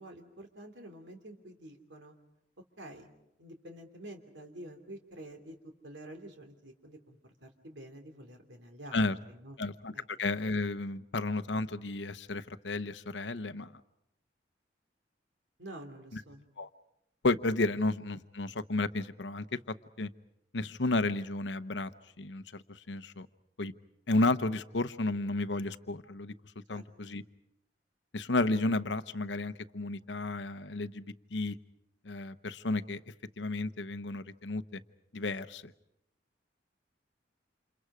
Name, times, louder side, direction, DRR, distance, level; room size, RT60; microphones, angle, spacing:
voice 1, 0.0-2.2 2.8-3.1 3.4-9.6 9.9-10.0 15.6-16.5 26.7-26.8, right 1 dB, 85° right, 4 dB, 3.0 m, -48 dB
voice 2, 9.6-9.9 10.2-13.7 16.1-16.2 16.6-16.7 17.2-20.1 20.5-21.9 22.2-23.3 23.6-23.7 24.1-26.3 26.7-27.2 28.1-31.6 32.0-33.0 33.4-34.8 35.1-35.7, left 2 dB, 80° left, 12 dB, 0.9 m, -32 dB
29.5 x 28.0 x 4.9 m, 0.80 s
head